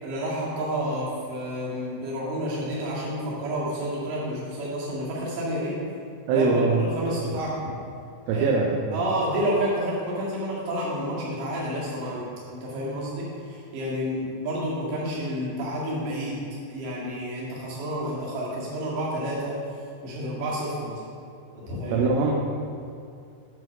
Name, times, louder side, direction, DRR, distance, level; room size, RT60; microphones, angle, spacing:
voice 1, 0.0-5.8 6.3-7.5 8.3-8.6 8.9-19.6 20.0-21.0 21.6-22.1, equal, 65° right, -6 dB, 3.9 m, -30 dB
voice 2, 6.3-6.8 8.3-9.0 21.9-22.5, right 4 dB, 85° right, -1 dB, 3.1 m, -22 dB
10.5 x 3.9 x 6.1 m, 2.4 s
omnidirectional pair, 5.8 m